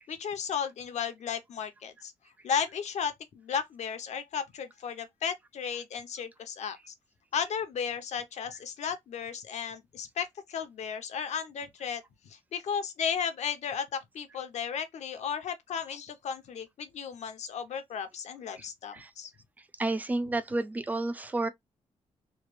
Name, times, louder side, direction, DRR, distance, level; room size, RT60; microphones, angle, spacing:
voice 1, 0.1-2.1 2.4-6.9 7.3-19.3, left 7 dB, 70° left, 0.8 m, -34 dB
voice 2, 19.8-21.5, right 2 dB, 15° right, 0.4 m, -30 dB
3.2 x 2.3 x 3.3 m
cardioid pair, 115°, 12 cm